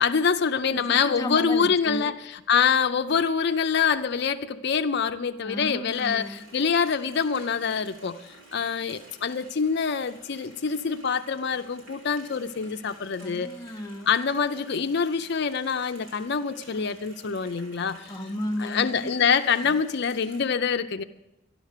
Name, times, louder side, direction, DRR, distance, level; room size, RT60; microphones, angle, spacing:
voice 1, 0.0-8.2 8.5-13.5 14.1-18.1 18.6-21.0, left 6 dB, 60° left, 8 dB, 0.5 m, -25 dB
voice 2, 0.7-2.1 5.4-6.4 13.2-14.1 18.1-19.1, left 1 dB, 20° left, 4 dB, 0.7 m, -34 dB
Water tap faucet, 5.9-20.4, right 1 dB, 80° right, 5.6 m, -52 dB
12.5 x 11.5 x 6.6 m, 0.91 s
head